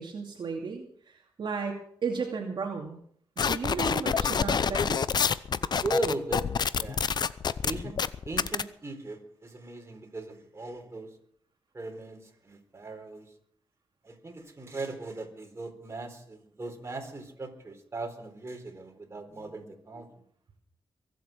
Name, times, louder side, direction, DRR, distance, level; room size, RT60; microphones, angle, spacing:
voice 1, 0.0-3.0 3.4-5.0, right 5 dB, 60° right, 0 dB, 2.6 m, -34 dB
sound 1, 3.4-8.6, left 6 dB, 55° left, 0.7 m, -27 dB
voice 2, 5.8-6.5 6.8-7.0 7.6-8.0 8.2-11.1 11.7-13.3 14.0-20.1, right 2 dB, 30° right, 2 dB, 4.1 m, -38 dB
23.0 x 8.3 x 6.3 m, 0.63 s
cardioid pair, 80°, 9 cm